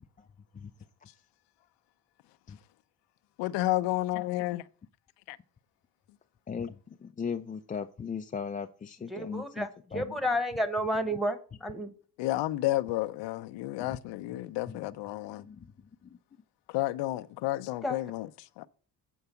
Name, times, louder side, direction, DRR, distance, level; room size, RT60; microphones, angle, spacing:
voice 1, 3.4-4.6 5.3-5.4 12.2-15.5 16.7-18.3 18.6-18.7, left 16 dB, 85° left, 0.6 m, -31 dB
voice 2, 7.0-9.6 9.9-10.1 13.8-13.9 14.7-14.8 15.4-15.6, left 6 dB, 20° left, 0.4 m, -37 dB
voice 3, 9.1-11.9 17.8-18.0, equal, ahead, 1.2 m, -31 dB
8.0 x 4.7 x 6.9 m
cardioid pair, 95°, 42 cm